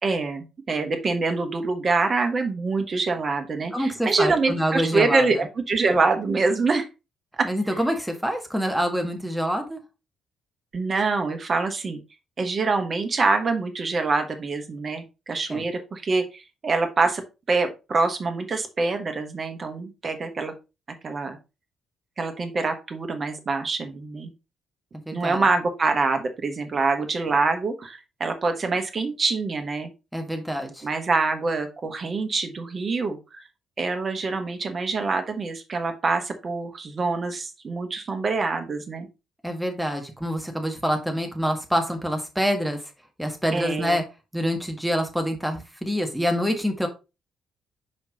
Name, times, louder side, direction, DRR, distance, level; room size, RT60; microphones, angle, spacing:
voice 1, 0.0-6.9 7.4-7.5 10.7-12.0 12.4-17.2 17.5-20.5 21.0-21.4 22.2-24.3 25.1-29.9 30.8-33.4 33.8-39.1 43.5-44.0, right 3 dB, 40° right, 6 dB, 1.3 m, -25 dB
voice 2, 3.7-5.3 7.4-9.8 15.5-15.7 25.0-25.4 30.1-30.9 39.4-42.8 43.2-44.0 44.3-46.9, equal, ahead, 3 dB, 1.7 m, -26 dB
5.5 x 5.1 x 3.9 m, 0.28 s
figure-of-eight pair, 40°, 0 cm